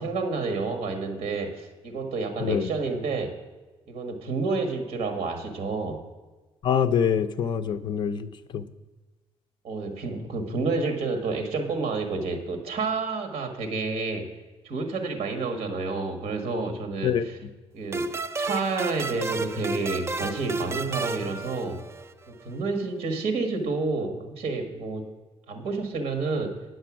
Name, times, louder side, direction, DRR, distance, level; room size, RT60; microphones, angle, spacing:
voice 1, 0.0-3.3 3.9-6.0 9.6-14.3 14.6-17.1 17.7-21.8 22.3-25.1 25.5-26.6, right 3 dB, 60° right, 5 dB, 1.5 m, -29 dB
voice 2, 2.4-2.7 6.6-8.7 17.0-17.5, left 7 dB, 45° left, 11 dB, 0.5 m, -25 dB
sound 1, 17.9-22.3, right 3 dB, 25° right, 0.4 m, -32 dB
9.4 x 7.7 x 6.1 m, 1.2 s
cardioid pair, 150°, 11 cm